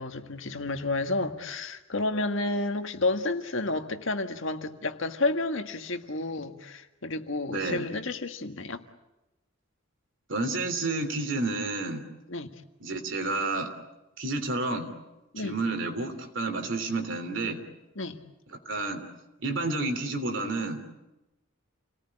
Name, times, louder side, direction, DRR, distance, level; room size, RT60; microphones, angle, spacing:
voice 1, 0.0-8.8 12.3-12.5 15.3-15.6 18.0-18.2, left 2 dB, 65° left, 7 dB, 1.7 m, -31 dB
voice 2, 7.5-7.8 10.3-12.0 12.8-13.7 14.2-14.9 15.4-17.6 18.6-19.0 19.4-20.8, right 2 dB, 65° right, 7 dB, 3.2 m, -30 dB
29.0 x 18.5 x 9.9 m, 1.0 s
head